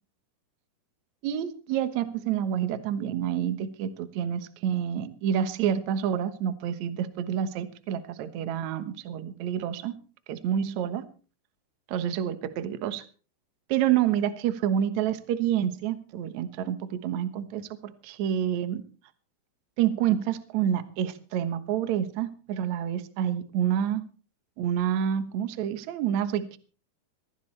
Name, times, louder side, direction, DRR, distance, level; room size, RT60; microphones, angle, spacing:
voice 1, 1.2-10.0 10.3-11.1 11.9-13.1 13.7-18.8 19.8-24.0 24.6-26.6, right 9 dB, 70° right, 11 dB, 1.7 m, -28 dB
22.0 x 15.0 x 3.3 m, 0.37 s
omnidirectional pair, 5.0 m